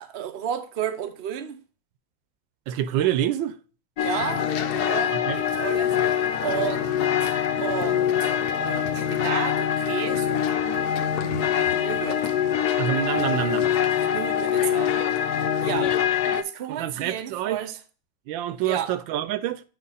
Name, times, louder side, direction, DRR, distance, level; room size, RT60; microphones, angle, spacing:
voice 1, 0.0-1.6 4.0-12.2 13.2-13.5 13.9-15.9 16.3-17.8 18.6-18.9, right 10 dB, 55° right, 0.6 m, -33 dB
voice 2, 2.7-3.6 5.1-5.4 12.8-13.7 16.7-17.6 18.3-19.6, right 11 dB, 85° right, 1.4 m, -26 dB
sound 1, 4.0-16.4, left 9 dB, 65° left, 1.0 m, -24 dB
8.1 x 3.1 x 5.4 m
omnidirectional pair, 2.0 m